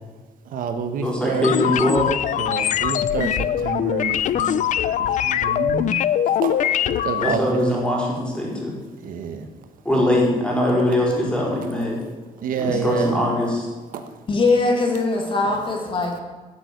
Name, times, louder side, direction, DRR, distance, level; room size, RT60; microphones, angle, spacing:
voice 1, 0.5-1.5 2.4-6.0 6.4-7.6 9.0-9.5 12.4-13.2 13.9-14.0, right 6 dB, 70° right, 7 dB, 1.5 m, -28 dB
voice 2, 1.0-2.1 7.2-8.7 9.8-12.0 12.6-13.7, left 1 dB, 5° left, -3 dB, 4.4 m, -21 dB
sound 1, 1.4-7.3, left 10 dB, 60° left, 0.6 m, -22 dB
voice 3, 14.3-16.2, left 3 dB, 35° left, 2 dB, 2.6 m, -21 dB
14.0 x 8.5 x 8.2 m, 1.4 s
cardioid pair, 170°, 15 cm